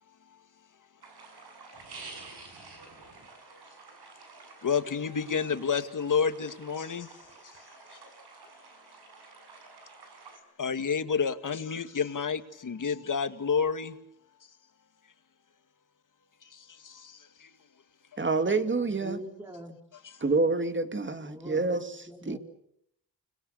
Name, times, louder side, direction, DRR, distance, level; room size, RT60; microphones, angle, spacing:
sound 1, 1.0-10.4, right 3 dB, 90° right, 6.8 m, -50 dB
voice 1, 2.0-2.4 2.8-3.1 3.5-3.6 4.6-7.1 7.9-8.0 10.6-14.0 16.5-17.5 20.0-20.2, left 6 dB, 55° left, 2.1 m, -30 dB
voice 2, 18.2-19.2 20.2-22.4, right 3 dB, 30° right, 2.4 m, -28 dB
voice 3, 18.9-19.8 21.2-21.8 22.1-22.4, equal, 10° right, 3.8 m, -43 dB
30.0 x 21.5 x 8.2 m
cardioid pair, 90°, 38 cm